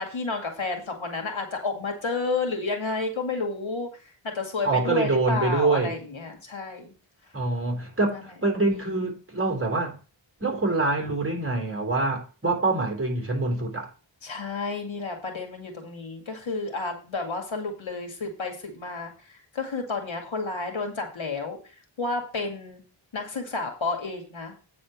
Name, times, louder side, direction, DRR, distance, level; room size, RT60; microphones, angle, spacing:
voice 1, 0.0-3.9 4.2-6.9 8.0-8.4 14.2-21.6 22.0-22.8 23.1-24.5, left 3 dB, 70° left, 2.3 m, -31 dB
voice 2, 4.6-5.9 7.3-10.0 10.4-13.9, right 3 dB, 25° right, 3.6 m, -25 dB
9.1 x 4.3 x 7.2 m
wide cardioid pair, 70°, 48 cm